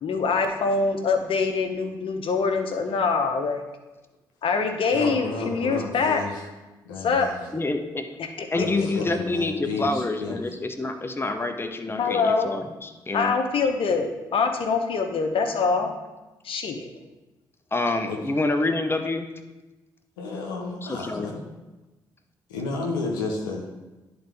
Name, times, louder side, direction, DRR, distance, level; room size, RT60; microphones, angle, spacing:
voice 1, 0.0-3.6 4.4-6.2 7.0-7.4 8.4-8.9 12.0-12.5 13.1-16.0 16.4-16.9, left 4 dB, 60° left, 5 dB, 0.9 m, -24 dB
voice 2, 4.9-6.5 6.8-7.4 8.5-10.6 18.1-18.2 20.2-21.4 22.5-23.7, left 3 dB, 90° left, 0 dB, 0.7 m, -32 dB
voice 3, 7.5-8.1 8.5-13.3 17.7-19.3 20.9-21.3, left 2 dB, 20° left, 6 dB, 0.7 m, -27 dB
10.5 x 4.0 x 3.4 m, 1.1 s
hypercardioid pair, 40°, 10 cm